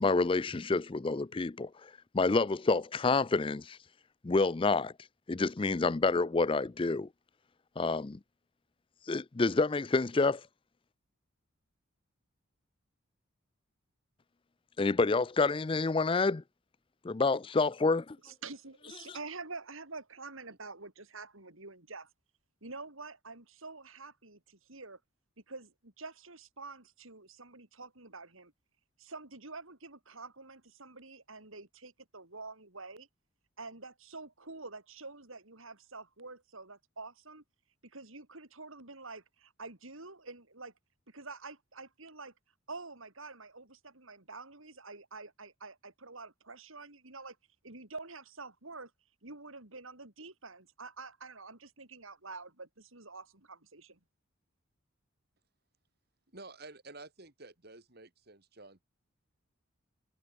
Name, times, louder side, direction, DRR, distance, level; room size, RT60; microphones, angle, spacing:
voice 1, 0.0-3.8 4.2-4.9 5.3-7.1 7.8-8.2 9.1-10.4 14.8-16.4 17.0-18.2, left 3 dB, 25° left, 0.4 m, -28 dB
voice 2, 18.2-22.1 22.6-25.0 25.5-28.5 29.0-33.1 33.6-37.4 37.8-40.7 41.1-42.3 42.7-47.4 47.6-48.9 49.2-54.0, right 3 dB, 75° right, 4.5 m, -47 dB
voice 3, 56.3-58.8, right 3 dB, 50° right, 3.1 m, -51 dB
head